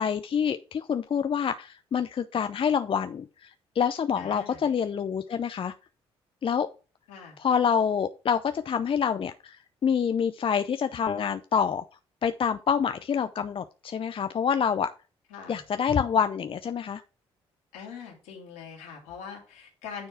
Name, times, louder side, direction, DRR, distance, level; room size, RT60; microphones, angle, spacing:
voice 1, 0.0-5.7 6.4-6.7 7.4-11.8 12.2-14.9 15.5-17.0, left 7 dB, 40° left, 10 dB, 0.5 m, -27 dB
voice 2, 4.2-4.6 7.1-7.4 15.3-15.6 17.7-20.1, left 6 dB, 75° left, -1 dB, 2.7 m, -42 dB
9.4 x 4.4 x 4.8 m, 0.34 s
hypercardioid pair, 45°, 14 cm